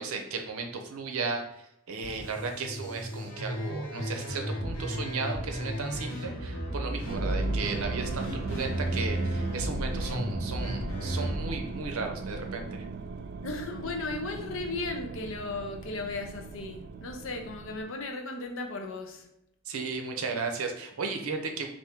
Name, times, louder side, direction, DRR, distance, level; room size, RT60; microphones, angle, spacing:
voice 1, 0.0-1.4 1.9-12.8 19.7-21.7, right 4 dB, 85° right, 4 dB, 0.6 m, -35 dB
sound 1, 2.0-11.5, right 1 dB, 80° left, 1.1 m, -33 dB
sound 2, 7.1-17.8, right 3 dB, 50° right, 0.3 m, -38 dB
voice 2, 13.4-19.2, left 2 dB, 65° left, 4 dB, 0.6 m, -36 dB
4.3 x 2.6 x 3.5 m, 0.83 s
head